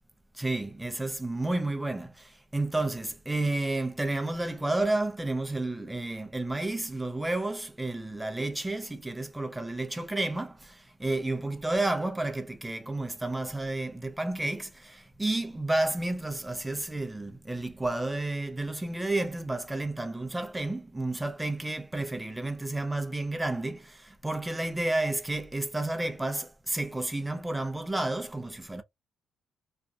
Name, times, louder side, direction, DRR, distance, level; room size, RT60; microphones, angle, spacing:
voice 1, 0.4-2.1 2.5-10.6 11.0-23.9 24.2-28.8, right 2 dB, 10° right, 0.5 m, -31 dB
2.6 x 2.5 x 2.3 m
cardioid pair, 90°, 0 cm